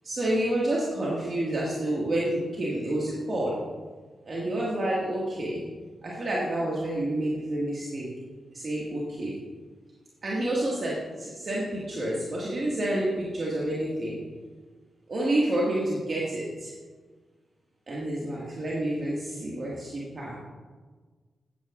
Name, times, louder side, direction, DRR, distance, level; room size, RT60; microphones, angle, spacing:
voice 1, 0.0-3.6 4.3-5.6 6.0-8.1 8.5-9.3 10.2-14.2 15.1-16.7 17.9-20.4, right 1 dB, 50° right, -6 dB, 2.0 m, -29 dB
12.0 x 9.0 x 2.6 m, 1.4 s
supercardioid pair, 45°, 0 cm